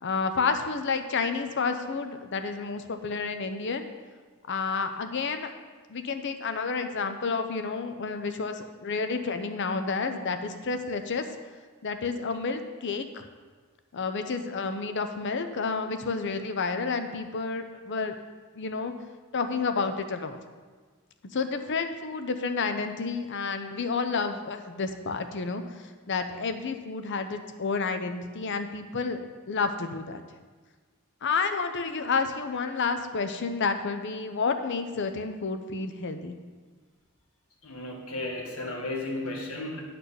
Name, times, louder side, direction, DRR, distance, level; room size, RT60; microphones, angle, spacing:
voice 1, 0.0-3.9 4.5-5.5 5.9-11.3 11.8-13.2 13.9-18.1 18.5-18.9 19.3-20.4 21.3-25.6 26.1-29.2 29.5-30.2 31.2-36.4, left 4 dB, 55° left, 8 dB, 0.7 m, -30 dB
voice 2, 37.6-39.8, left 2 dB, 80° left, 0 dB, 1.7 m, -34 dB
10.0 x 4.3 x 6.9 m, 1.4 s
head